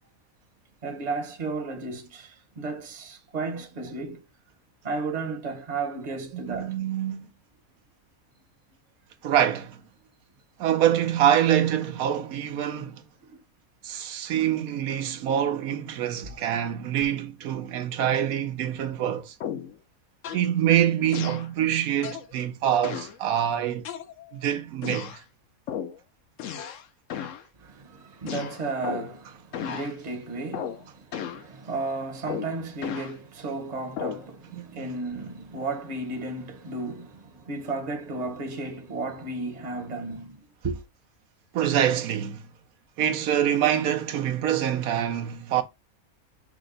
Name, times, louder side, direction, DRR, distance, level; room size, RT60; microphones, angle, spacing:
voice 1, 0.8-4.2 4.8-6.8 13.3-13.4 16.2-16.6 27.6-40.8, right 3 dB, 35° right, 0.8 m, -34 dB
voice 2, 6.3-7.3 9.2-9.8 10.6-12.9 13.8-19.3 20.3-23.8 24.3-25.2 34.5-34.9 41.5-42.5 43.0-45.6, right 10 dB, 85° right, 1.2 m, -25 dB
sound 1, 19.4-19.8 20.2-20.5 21.1-21.5 22.0-22.3 22.8-23.2 23.8-24.4 24.8-25.2 25.7-26.0 26.4-26.8 27.1-27.4 28.3-29.2 29.5-29.9 30.5-30.8 31.1-31.5 32.3-33.1 34.0-34.3, left 9 dB, 65° left, 0.9 m, -34 dB
6.0 x 2.2 x 3.8 m
omnidirectional pair, 1.5 m